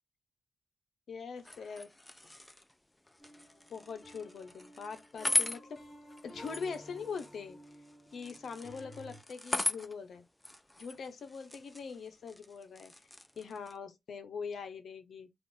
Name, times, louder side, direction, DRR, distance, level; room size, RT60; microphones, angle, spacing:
voice 1, 1.1-1.9 3.7-5.8 6.2-7.6 8.1-10.2 10.8-12.9 13.4-15.3, left 5 dB, 70° left, 0.7 m, -42 dB
sound 1, 1.4-13.8, left 2 dB, 15° left, 0.5 m, -40 dB
sound 2, 3.2-9.2, left 1 dB, 35° left, 1.3 m, -53 dB
2.5 x 2.4 x 3.6 m
supercardioid pair, 45°, 0 cm